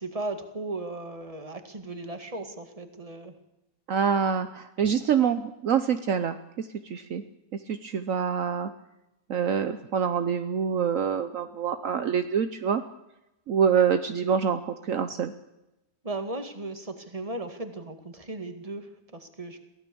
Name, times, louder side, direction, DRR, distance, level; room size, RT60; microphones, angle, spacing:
voice 1, 0.0-3.3 16.0-19.6, right 2 dB, 25° right, 7 dB, 2.1 m, -36 dB
voice 2, 3.9-7.2 7.7-8.7 9.3-12.8 13.5-15.3, right 7 dB, 65° right, 9 dB, 1.2 m, -26 dB
23.0 x 16.0 x 7.0 m, 0.94 s
omnidirectional pair, 1.5 m